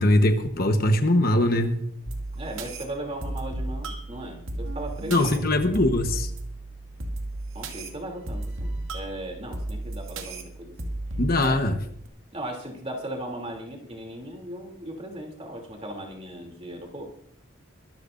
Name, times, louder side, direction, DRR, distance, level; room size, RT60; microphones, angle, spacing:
voice 1, 0.0-1.9 5.1-6.3 11.2-11.8, left 1 dB, 45° left, 6 dB, 1.1 m, -21 dB
sound 1, 2.1-12.1, right 1 dB, 75° right, 2.2 m, -34 dB
voice 2, 2.3-5.5 7.5-10.7 11.4-11.6 12.3-17.1, right 1 dB, 30° right, 1 dB, 2.9 m, -37 dB
23.5 x 13.5 x 2.6 m, 0.67 s
head